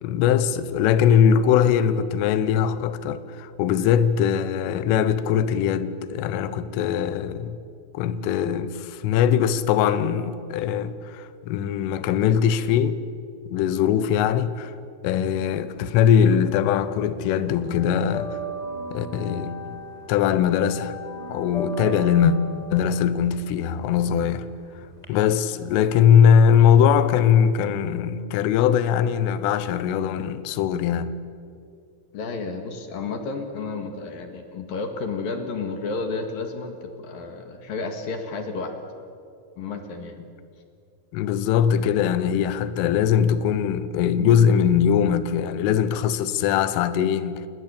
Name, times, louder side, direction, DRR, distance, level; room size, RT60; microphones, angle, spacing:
voice 1, 0.0-7.6 8.0-13.0 13.5-14.7 15.0-18.4 18.9-19.8 20.1-21.0 21.3-22.4 22.7-24.5 25.1-31.1 40.2-40.3 41.1-47.4, left 8 dB, 85° left, 3.5 m, -21 dB
sound 1, 15.8-16.9 17.1-25.1, right 2 dB, 10° left, 3.6 m, -36 dB
voice 2, 32.1-38.7 39.6-40.2, left 4 dB, 55° left, 3.0 m, -31 dB
29.5 x 19.5 x 8.4 m
omnidirectional pair, 5.6 m